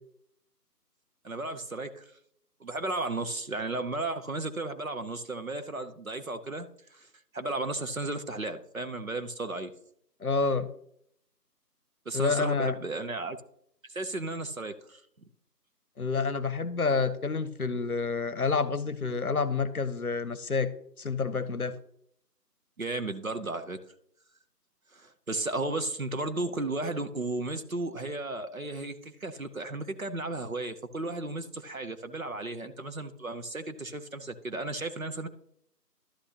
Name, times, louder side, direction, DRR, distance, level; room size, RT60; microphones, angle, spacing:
voice 1, 1.2-2.0 2.6-7.1 7.3-9.7 12.1-13.4 13.9-15.0 22.8-23.8 24.9-35.3, right 2 dB, 55° right, 9 dB, 0.9 m, -34 dB
voice 2, 10.2-10.7 12.1-12.8 16.0-20.7 21.0-21.8, left 4 dB, 60° left, 16 dB, 0.8 m, -28 dB
11.5 x 8.0 x 2.8 m, 0.68 s
figure-of-eight pair, 175°, 49 cm